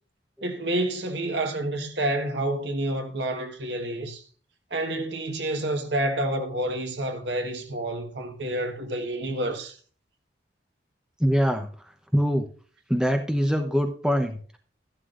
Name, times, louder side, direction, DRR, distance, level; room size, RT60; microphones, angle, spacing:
voice 1, 0.4-4.2 4.7-9.8, right 1 dB, 70° right, 1.4 m, -29 dB
voice 2, 11.2-11.7 12.1-12.4 12.9-14.6, equal, 5° right, 0.9 m, -23 dB
13.0 x 11.5 x 2.5 m
head